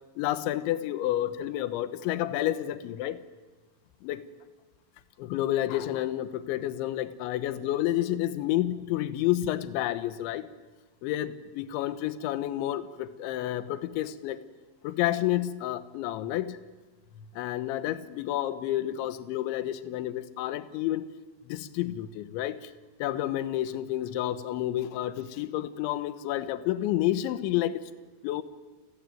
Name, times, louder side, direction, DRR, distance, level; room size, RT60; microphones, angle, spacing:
voice 1, 0.2-3.2 4.0-4.2 5.2-10.5 11.0-14.4 14.8-16.6 17.2-21.1 21.5-22.7 23.0-27.8 28.2-28.4, left 13 dB, 80° left, 13 dB, 3.4 m, -30 dB
30.0 x 19.0 x 9.2 m, 1.3 s
omnidirectional pair, 5.4 m